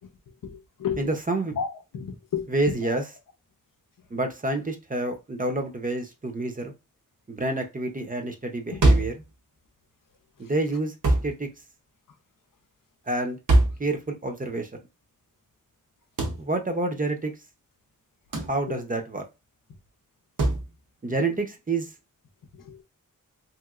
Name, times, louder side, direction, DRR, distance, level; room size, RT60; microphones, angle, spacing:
voice 1, 0.4-1.0 1.6-2.5 8.7-8.8 18.7-18.8 22.7-22.8, left 7 dB, 80° left, 0.6 m, -32 dB
voice 2, 1.0-1.5 2.5-3.1 4.1-6.7 7.3-9.1 10.4-11.5 13.1-13.4 13.8-14.7 16.4-17.3 18.5-19.2 21.0-21.9, right 2 dB, 25° right, 0.6 m, -28 dB
sound 1, 8.8-9.2 11.0-11.4 13.5-13.9 16.2-16.4 18.3-18.6 20.4-20.7, right 2 dB, 70° right, 0.8 m, -21 dB
3.0 x 2.9 x 2.4 m
wide cardioid pair, 100°, 32 cm